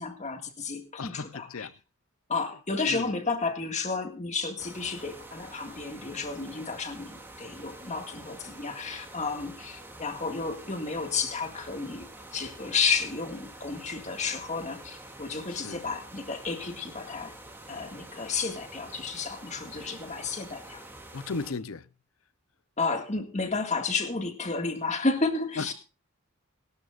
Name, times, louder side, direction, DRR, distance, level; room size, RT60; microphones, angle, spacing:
voice 1, 0.0-1.7 2.3-12.1 12.3-17.4 17.7-20.8 22.8-25.7, left 4 dB, 35° left, 2.0 m, -32 dB
voice 2, 1.0-1.7 2.9-3.1 15.5-15.8 21.1-21.9 25.6-25.7, left 4 dB, 80° left, 0.7 m, -35 dB
sound 1, 4.6-21.5, right 1 dB, 10° right, 2.5 m, -47 dB
21.5 x 12.5 x 2.5 m
head